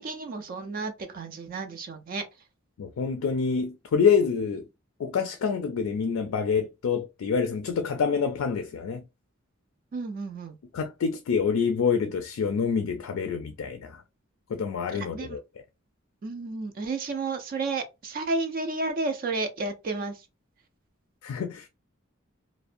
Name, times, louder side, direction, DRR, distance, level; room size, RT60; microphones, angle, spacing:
voice 1, 0.0-2.3 9.9-10.6 14.9-15.4 16.2-20.3, right 3 dB, 45° right, 0.3 m, -32 dB
voice 2, 2.8-4.6 5.0-9.0 10.7-14.0 14.5-15.4 21.2-21.7, left 6 dB, 80° left, 0.4 m, -27 dB
2.5 x 2.1 x 2.5 m
head